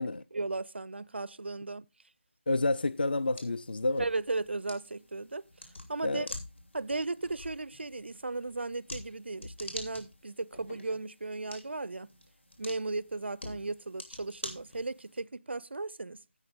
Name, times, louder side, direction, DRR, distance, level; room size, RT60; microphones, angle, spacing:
voice 1, 0.3-1.9 4.0-6.3 6.7-12.1 12.6-16.2, right 3 dB, 60° right, 0.4 m, -36 dB
voice 2, 2.5-4.0 6.0-6.3, left 2 dB, 50° left, 0.4 m, -29 dB
sound 1, 2.8-15.2, left 2 dB, 65° left, 2.9 m, -47 dB
15.5 x 5.6 x 3.6 m
figure-of-eight pair, 160°, 7 cm